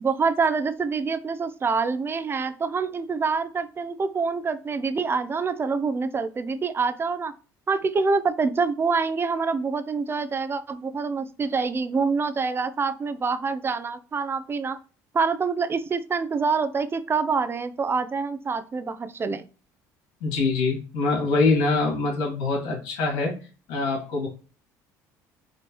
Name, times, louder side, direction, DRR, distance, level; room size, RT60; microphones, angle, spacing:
voice 1, 0.0-7.3 7.7-14.8 15.1-19.4, right 4 dB, 30° right, 12 dB, 0.6 m, -26 dB
voice 2, 20.2-23.3 23.7-24.3, left 3 dB, 80° left, 0 dB, 2.3 m, -24 dB
5.2 x 3.2 x 3.0 m, 0.35 s
supercardioid pair, 85°, 8 cm